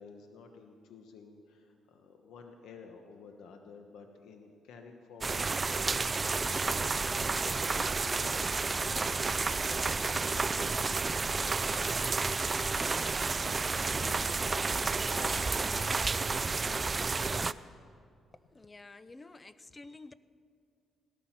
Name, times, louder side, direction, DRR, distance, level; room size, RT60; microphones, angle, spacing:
voice 1, 0.0-14.6 14.9-17.4, left 5 dB, 80° left, 4 dB, 1.2 m, -52 dB
sound 1, 5.2-17.5, right 4 dB, 30° right, 0.4 m, -31 dB
voice 2, 18.5-20.1, left 3 dB, 20° left, 15 dB, 0.6 m, -50 dB
17.5 x 13.5 x 5.9 m, 2.4 s
cardioid pair, 90°, 0 cm